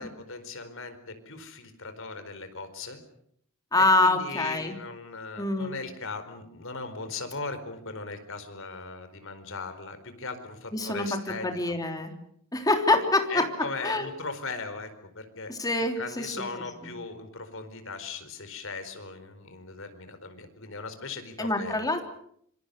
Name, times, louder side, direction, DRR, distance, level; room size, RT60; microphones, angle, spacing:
voice 1, 0.0-3.0 4.0-11.8 13.3-14.9 15.1-21.9, left 4 dB, 65° left, 9 dB, 4.4 m, -38 dB
voice 2, 3.7-4.7 5.4-5.8 10.7-11.1 11.4-12.1 12.5-13.4 13.8-14.1 15.5-16.3 16.8-16.9 21.4-22.0, left 2 dB, 15° left, 5 dB, 3.4 m, -25 dB
26.5 x 25.5 x 6.8 m, 0.68 s
head